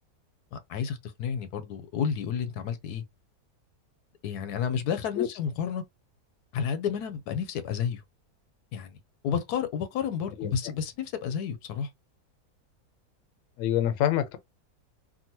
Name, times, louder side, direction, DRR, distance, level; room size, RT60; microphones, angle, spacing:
voice 1, 0.5-3.0 4.2-5.8 6.5-8.0 8.7-8.9 9.2-11.9, left 7 dB, 80° left, 1.2 m, -31 dB
voice 2, 13.6-14.4, left 11 dB, 65° left, 0.9 m, -25 dB
3.7 x 2.2 x 2.8 m
omnidirectional pair, 1.6 m